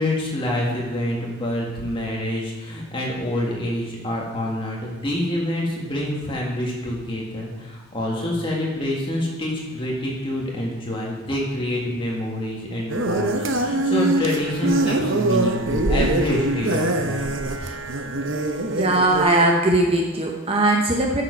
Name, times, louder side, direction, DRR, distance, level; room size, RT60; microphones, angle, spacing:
voice 1, 0.0-17.3, left 1 dB, 25° left, -3 dB, 1.8 m, -26 dB
sound 1, 12.9-19.3, right 2 dB, 60° right, 0.8 m, -23 dB
voice 2, 18.7-21.2, right 2 dB, 25° right, 0 dB, 0.8 m, -19 dB
9.6 x 6.7 x 5.3 m, 1.2 s
head